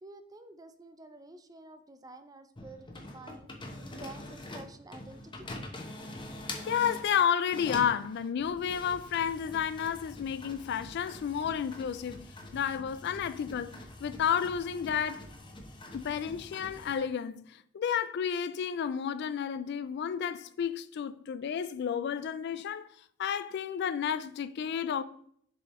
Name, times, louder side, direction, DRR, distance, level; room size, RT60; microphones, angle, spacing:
voice 1, 0.0-5.5, right 2 dB, 20° right, 0.5 m, -50 dB
sound 1, 2.6-7.1 7.5-17.0, left 1 dB, 25° left, 0.9 m, -45 dB
voice 2, 6.6-12.3 12.5-13.7 14.0-15.2 15.9-22.9 23.2-25.0, left 8 dB, 55° left, 0.3 m, -31 dB
7.0 x 4.7 x 3.1 m
head